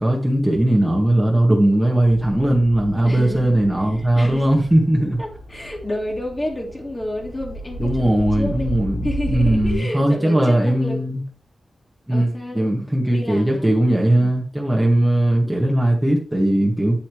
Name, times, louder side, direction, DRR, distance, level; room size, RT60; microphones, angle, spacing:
voice 1, 0.0-5.2 7.8-9.0 9.3-11.2 12.1-17.0, right 1 dB, 5° right, 1.9 m, -18 dB
sound 1, 2.0-9.8, right 1 dB, 75° left, 4.0 m, -32 dB
voice 2, 3.0-4.7 5.2-8.7 9.0-11.2 12.1-13.7, left 1 dB, 25° left, 3.2 m, -30 dB
9.2 x 8.5 x 3.2 m
wide cardioid pair, 100°, 0 cm